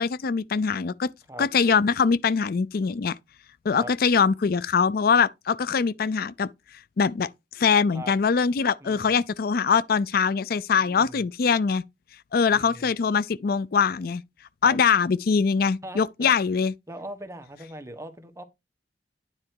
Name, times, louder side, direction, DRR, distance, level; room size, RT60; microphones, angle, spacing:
voice 1, 0.0-1.1 1.4-3.1 3.6-6.5 7.0-7.3 7.6-11.8 12.3-14.2 14.6-16.7, left 5 dB, 55° left, 0.4 m, -23 dB
voice 2, 8.8-9.2 10.8-11.2 12.5-12.9 14.6-14.8 15.8-16.3 16.9-18.4, right 1 dB, 15° right, 1.2 m, -40 dB
9.8 x 4.5 x 4.7 m
head